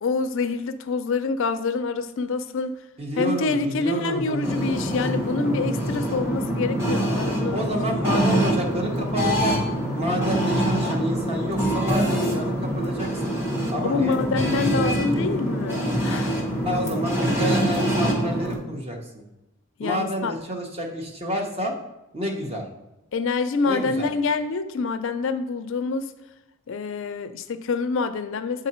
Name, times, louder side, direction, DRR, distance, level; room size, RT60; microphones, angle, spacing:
voice 1, 0.0-2.7 3.2-7.6 8.1-8.4 13.8-16.4 19.8-20.3 23.1-26.1 26.7-28.7, left 4 dB, 60° left, 10 dB, 0.4 m, -26 dB
voice 2, 3.0-4.6 7.5-9.5 9.9-13.3 13.7-14.2 14.8-15.2 16.6-19.2 19.8-21.7 22.1-22.6 23.6-24.1, equal, 25° right, 1 dB, 0.9 m, -29 dB
sound 1, 4.4-18.6, equal, 10° right, 1.2 m, -25 dB
7.3 x 3.8 x 4.3 m, 0.98 s
head